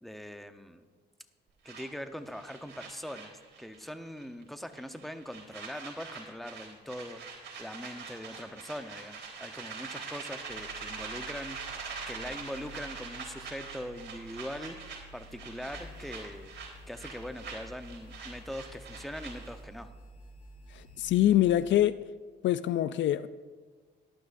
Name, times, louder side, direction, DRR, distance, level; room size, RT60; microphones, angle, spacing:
voice 1, 0.0-0.9 1.6-7.2 7.6-16.5 16.9-19.9, equal, ahead, 8 dB, 0.9 m, -42 dB
sound 1, 1.7-3.9 4.2-4.4 4.7-19.6, right 5 dB, 65° right, 4.0 m, -44 dB
sound 2, 10.5-21.7, equal, 45° left, 3.8 m, -51 dB
voice 2, 20.7-22.0 22.4-23.3, left 12 dB, 70° left, 14 dB, 0.4 m, -25 dB
18.0 x 12.0 x 2.6 m, 1.5 s
cardioid pair, 90°, 20 cm